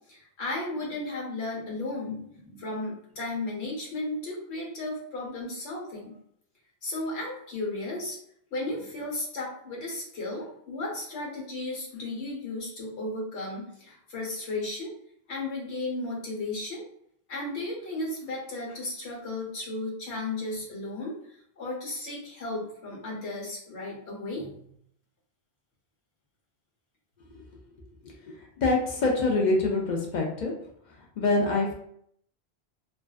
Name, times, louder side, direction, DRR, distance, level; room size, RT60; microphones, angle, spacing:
voice 1, 0.1-6.1 6.8-8.2 8.5-14.9 15.3-16.8 17.3-24.6, left 2 dB, 90° left, -3 dB, 1.1 m, -34 dB
voice 2, 28.6-30.5 31.2-31.7, left 2 dB, 55° left, 0 dB, 0.5 m, -24 dB
2.5 x 2.2 x 2.3 m, 0.68 s
omnidirectional pair, 1.1 m